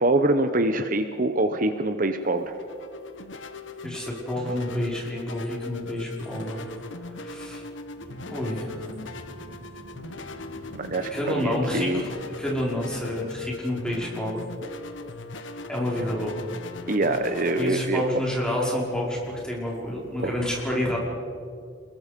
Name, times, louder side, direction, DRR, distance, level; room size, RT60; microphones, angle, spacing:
voice 1, 0.0-2.5 10.8-12.0 16.9-18.0 20.2-20.3, right 2 dB, 45° right, 8 dB, 1.0 m, -24 dB
sound 1, 2.2-20.4, left 3 dB, 80° left, 1.4 m, -40 dB
voice 2, 3.8-6.7 7.2-7.6 8.3-8.9 11.1-12.1 12.4-14.4 15.7-16.4 17.6-21.0, left 1 dB, 5° left, -4 dB, 5.5 m, -29 dB
sound 2, 8.0-13.6, equal, 75° right, 3.8 m, -46 dB
28.5 x 21.5 x 5.4 m, 2.3 s
head